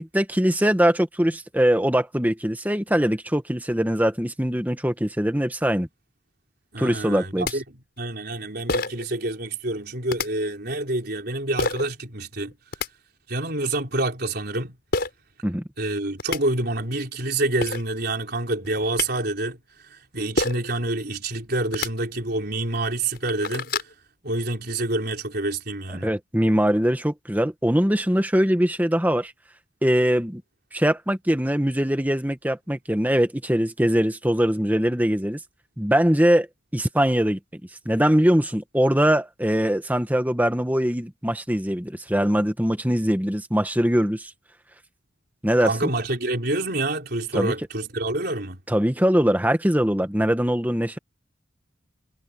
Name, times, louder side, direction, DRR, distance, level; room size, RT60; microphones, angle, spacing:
voice 1, 0.0-5.9 6.8-7.6 15.4-15.6 26.0-29.3 29.8-30.4 30.7-35.4 35.8-36.5 36.7-37.4 37.8-44.3 45.4-45.9 47.3-47.5 48.7-51.0, equal, 10° right, 1.5 m, -22 dB
voice 2, 6.7-7.6 8.0-12.5 13.3-14.8 15.8-19.6 19.8-23.7 24.2-26.1 45.6-48.6, right 2 dB, 55° right, 4.3 m, -27 dB
sound 1, 7.1-7.2 7.4-7.5 8.7-9.1 10.1-10.3 11.6-11.8 12.5-12.9 14.9-15.1 15.9-16.0 16.2-16.4 17.3-17.4 17.6-17.8 18.6-19.1 20.4-20.7 21.6-21.9 22.5-22.6 23.0-23.9, left 3 dB, 50° left, 5.8 m, -27 dB
head